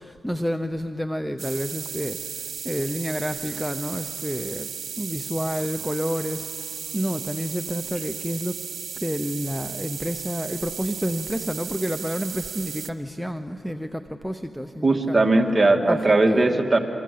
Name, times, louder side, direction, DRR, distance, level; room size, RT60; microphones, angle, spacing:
voice 1, 0.0-4.7 5.0-8.6 8.9-15.2 15.9-16.6, equal, ahead, 8 dB, 0.9 m, -30 dB
sound 1, 1.4-12.9, right 7 dB, 85° right, 1.0 m, -35 dB
voice 2, 14.8-16.8, right 2 dB, 25° right, 2 dB, 2.6 m, -19 dB
28.5 x 24.0 x 8.7 m, 2.8 s
cardioid pair, 75°, 0 cm